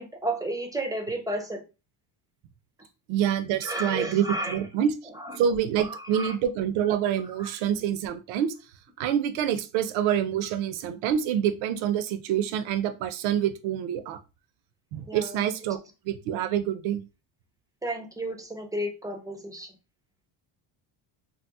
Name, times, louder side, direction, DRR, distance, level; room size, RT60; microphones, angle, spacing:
voice 1, 0.0-1.6 3.6-4.6 5.1-5.4 5.9-6.3 7.4-7.5 15.1-15.4 17.8-19.7, right 1 dB, 10° right, 4 dB, 0.3 m, -32 dB
voice 2, 3.1-4.9 5.4-8.5 9.0-14.2 14.9-15.8 16.1-17.0, right 9 dB, 85° right, 10 dB, 0.6 m, -26 dB
2.8 x 2.0 x 3.5 m, 0.30 s
cardioid pair, 115°, 46 cm